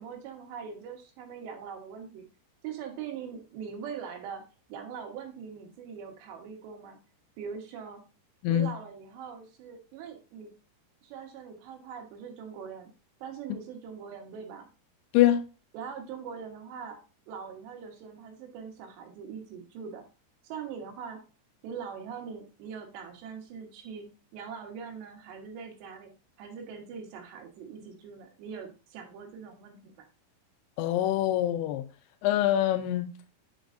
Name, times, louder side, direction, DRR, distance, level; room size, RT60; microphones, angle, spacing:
voice 1, 0.0-2.2 2.6-4.4 4.7-7.0 7.4-8.0 8.5-10.5 11.0-12.9 13.2-14.7 15.7-17.0 17.3-20.0 20.4-21.2 21.6-26.1 26.4-30.1, right 6 dB, 85° right, 3.4 m, -42 dB
voice 2, 30.8-31.8 32.2-33.1, left 12 dB, 80° left, 2.6 m, -24 dB
8.7 x 5.3 x 2.5 m
omnidirectional pair, 4.9 m